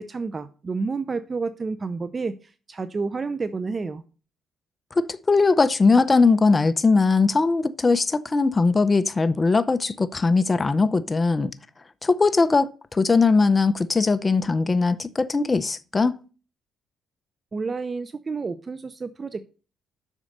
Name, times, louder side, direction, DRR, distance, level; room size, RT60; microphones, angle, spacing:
voice 1, 0.0-4.0 17.5-19.4, right 4 dB, 30° right, 0.6 m, -30 dB
voice 2, 5.0-11.5 12.0-16.2, left 4 dB, 25° left, 0.6 m, -20 dB
7.3 x 6.3 x 6.5 m
cardioid pair, 90°, 0 cm